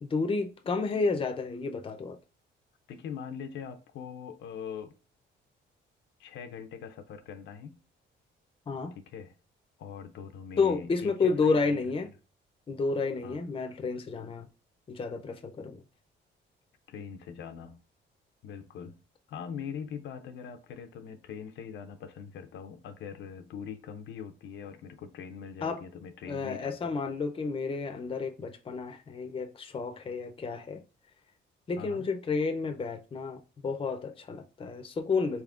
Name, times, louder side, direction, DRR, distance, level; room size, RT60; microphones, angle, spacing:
voice 1, 0.0-2.2 8.7-8.9 10.6-12.1 12.7-14.5 14.9-15.8 25.6-25.8 26.3-30.8 31.7-35.4, left 4 dB, 25° left, 0.5 m, -31 dB
voice 2, 2.9-4.9 6.2-7.8 8.9-9.3 9.8-11.9 13.2-13.4 16.9-17.8 18.4-19.0 19.3-27.0 31.8-32.1, left 7 dB, 75° left, 0.5 m, -42 dB
4.1 x 3.5 x 2.4 m
cardioid pair, 90°, 20 cm